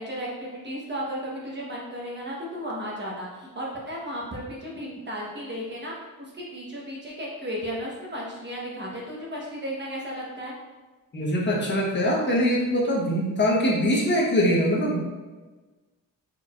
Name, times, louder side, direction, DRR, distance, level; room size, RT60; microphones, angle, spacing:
voice 1, 0.0-10.5, equal, 30° right, -3 dB, 1.1 m, -34 dB
voice 2, 11.1-15.0, equal, 30° left, -3 dB, 1.1 m, -23 dB
4.5 x 4.1 x 2.5 m, 1.3 s
wide cardioid pair, 140°, 35 cm